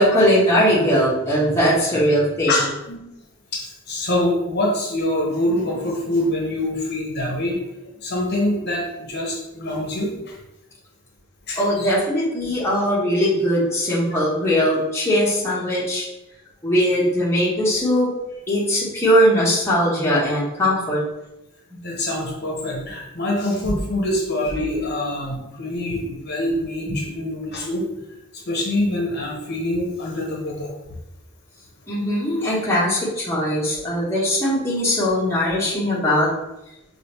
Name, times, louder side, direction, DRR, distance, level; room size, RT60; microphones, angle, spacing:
voice 1, 0.0-2.5 11.6-16.1 16.6-18.1 18.5-21.0 23.7-23.8 26.9-27.0 31.9-36.3, equal, 15° left, -7 dB, 1.0 m, -20 dB
voice 2, 2.5-3.0 3.5-10.3 11.5-11.9 14.1-14.2 21.8-27.8 28.3-30.7, left 1 dB, 50° left, -2 dB, 0.9 m, -25 dB
4.9 x 2.4 x 3.0 m, 0.91 s
head